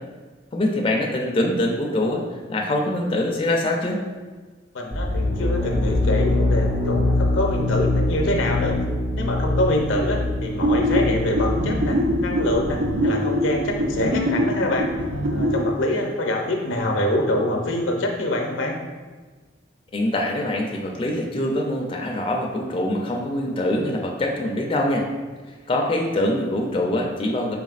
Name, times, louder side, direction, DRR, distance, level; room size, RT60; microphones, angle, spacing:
voice 1, 0.5-2.2 2.5-4.0 19.9-25.1 25.7-27.5, left 1 dB, 30° left, 0 dB, 0.3 m, -24 dB
voice 2, 4.7-8.7 9.2-14.9 15.3-18.8, left 1 dB, 85° left, 1 dB, 0.6 m, -25 dB
sound 1, 4.9-12.6, left 2 dB, 35° right, 0.7 m, -24 dB
sound 2, 10.6-15.7, equal, 80° right, 0.5 m, -23 dB
4.0 x 3.4 x 2.4 m, 1.3 s
head